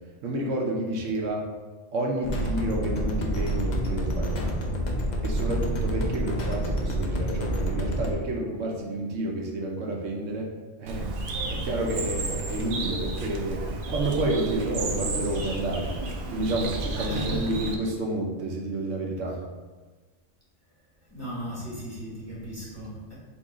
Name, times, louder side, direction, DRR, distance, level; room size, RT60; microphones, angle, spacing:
voice 1, 0.2-1.5 1.9-4.6 5.2-10.5 10.8-11.1 11.5-13.6 13.9-15.9 16.3-19.4, right 1 dB, 90° right, -1 dB, 1.1 m, -30 dB
sound 1, 2.2-8.1, equal, 50° left, 0.6 m, -28 dB
Bird, 10.9-17.8, right 2 dB, 55° right, 0.6 m, -32 dB
voice 2, 17.0-17.5 21.1-23.1, equal, 15° left, -8 dB, 1.2 m, -36 dB
4.1 x 2.8 x 3.7 m, 1.3 s
omnidirectional pair, 1.3 m